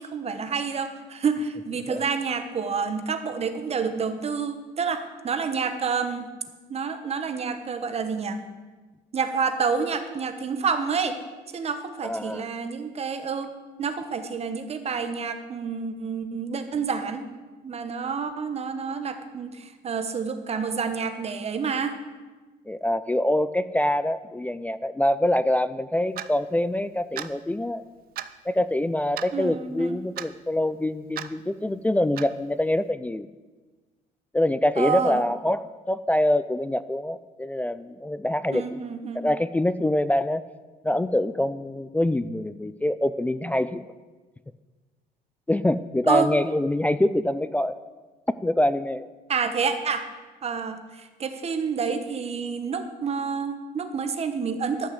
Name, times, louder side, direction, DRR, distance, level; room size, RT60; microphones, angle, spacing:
voice 1, 0.0-6.3 6.7-8.4 9.1-11.2 11.5-13.5 13.8-17.3 17.6-22.0 29.3-30.0 34.8-35.2 38.5-39.3 46.1-46.3 49.3-50.1 50.4-54.9, right 5 dB, 40° right, 9 dB, 1.2 m, -28 dB
voice 2, 12.0-12.5 22.7-27.8 28.5-33.3 34.3-38.7 39.1-40.4 40.8-43.8 45.5-47.8 48.4-49.1, left 1 dB, 10° left, 14 dB, 0.3 m, -25 dB
Clock, 26.2-26.3 27.2-27.3 28.2-28.3 29.2-29.3 30.2-30.3 31.2-31.3 32.2-32.3, right 12 dB, 60° right, 0.6 m, -34 dB
11.5 x 6.2 x 7.8 m, 1.3 s
cardioid pair, 110°, 17 cm